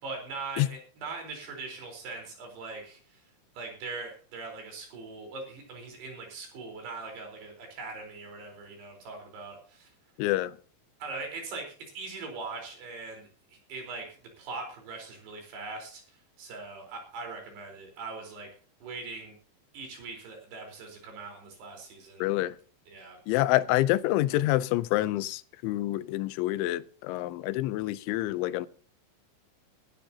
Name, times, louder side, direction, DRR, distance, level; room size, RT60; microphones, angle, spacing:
voice 1, 0.0-3.0 3.5-9.9 11.0-13.3 13.7-16.0 16.4-18.5 18.8-19.3 19.7-22.2 22.9-23.2, right 3 dB, 60° right, 6.2 m, -41 dB
voice 2, 10.2-10.5 22.2-22.6 23.3-28.7, left 16 dB, 85° left, 3.1 m, -27 dB
19.0 x 12.5 x 2.9 m
omnidirectional pair, 5.4 m